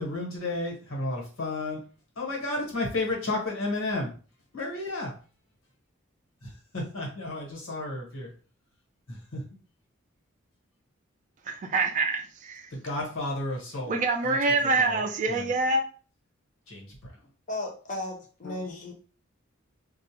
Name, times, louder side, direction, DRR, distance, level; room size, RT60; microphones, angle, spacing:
voice 1, 0.0-1.8 2.2-4.1 4.5-5.1 6.4-8.3 9.1-9.4 12.7-14.4 14.6-15.0 15.3-15.5 16.7-17.1 18.4-18.6, left 2 dB, 85° left, 1.1 m, -32 dB
voice 2, 11.5-12.6 13.9-15.8, right 3 dB, 40° right, 0.3 m, -26 dB
voice 3, 17.5-18.9, left 2 dB, 40° left, 0.6 m, -35 dB
2.3 x 2.1 x 2.9 m
head